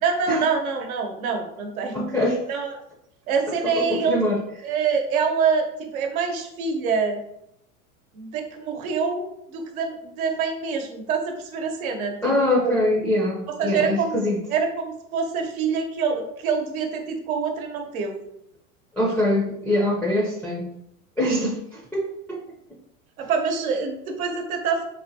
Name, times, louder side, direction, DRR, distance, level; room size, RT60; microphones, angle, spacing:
voice 1, 0.0-2.1 2.5-2.8 3.3-4.2 4.6-7.2 8.1-12.8 13.6-14.2 14.5-18.2 23.2-24.8, right 5 dB, 90° right, 4 dB, 0.8 m, -26 dB
voice 2, 1.9-2.4 3.6-4.4 12.2-14.4 19.0-20.7 21.2-22.4, left 1 dB, 5° left, -3 dB, 0.4 m, -23 dB
3.8 x 2.6 x 2.6 m, 0.79 s
supercardioid pair, 110°, 41 cm